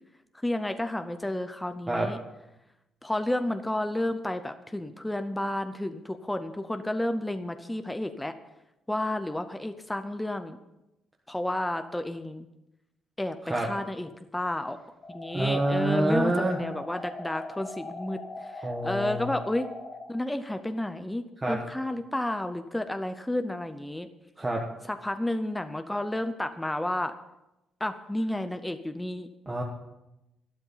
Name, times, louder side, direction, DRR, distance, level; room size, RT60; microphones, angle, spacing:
voice 1, 0.4-2.2 3.0-8.4 8.9-10.6 11.3-12.5 13.2-14.8 15.1-19.7 20.1-24.1 24.9-27.1 27.8-29.3, left 1 dB, 5° left, 8 dB, 0.6 m, -31 dB
sound 1, 15.0-20.0, left 2 dB, 30° left, 1.7 m, -41 dB
voice 2, 15.3-16.6 18.6-19.3 21.4-21.6 24.4-24.6 29.5-29.6, right 1 dB, 10° right, -1 dB, 1.3 m, -27 dB
12.5 x 12.0 x 5.6 m, 0.92 s
cardioid pair, 160°, 0 cm